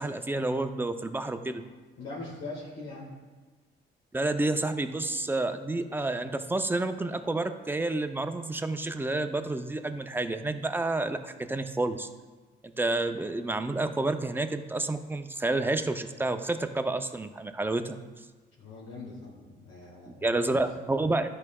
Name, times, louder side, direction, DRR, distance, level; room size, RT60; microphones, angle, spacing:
voice 1, 0.0-1.6 4.1-12.1 12.8-18.0 20.2-21.3, right 2 dB, 10° right, 8 dB, 0.4 m, -29 dB
voice 2, 2.0-3.1 18.6-20.6 20.9-21.2, left 3 dB, 80° left, -6 dB, 1.6 m, -42 dB
11.0 x 4.7 x 2.3 m, 1.3 s
cardioid pair, 90°, 20 cm